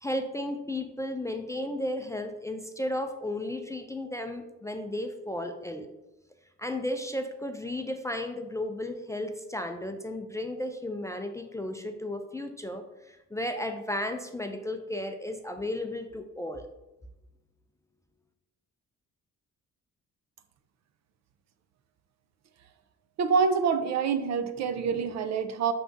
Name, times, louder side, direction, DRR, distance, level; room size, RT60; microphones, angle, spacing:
voice 1, 0.0-5.9 6.6-16.7, left 1 dB, 10° left, 6 dB, 0.3 m, -34 dB
voice 2, 23.2-25.7, right 6 dB, 65° right, 9 dB, 0.5 m, -26 dB
5.9 x 3.4 x 2.6 m, 0.99 s
cardioid pair, 90°, 30 cm